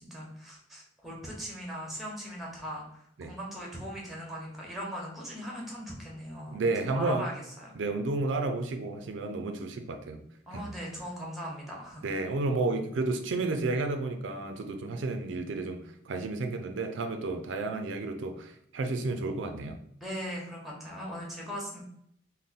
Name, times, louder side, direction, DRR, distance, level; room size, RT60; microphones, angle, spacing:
voice 1, 0.0-6.6 6.9-7.7 10.5-12.1 20.0-21.8, equal, ahead, -2 dB, 0.9 m, -39 dB
voice 2, 6.5-7.3 7.8-10.2 10.5-10.7 12.0-19.8, right 3 dB, 80° right, 6 dB, 0.4 m, -31 dB
3.5 x 2.1 x 4.0 m, 0.71 s
head